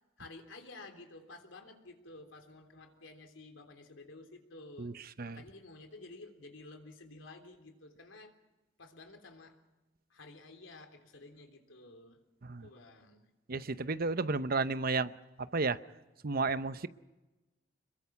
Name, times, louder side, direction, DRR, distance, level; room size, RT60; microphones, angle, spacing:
voice 1, 0.2-8.4 8.8-9.6 10.1-12.2 12.6-13.3, left 2 dB, 85° left, 5 dB, 3.4 m, -52 dB
voice 2, 13.5-15.1 15.5-15.8 16.2-16.9, right 3 dB, 50° right, 13 dB, 0.8 m, -32 dB
26.5 x 22.5 x 5.9 m, 1.1 s
head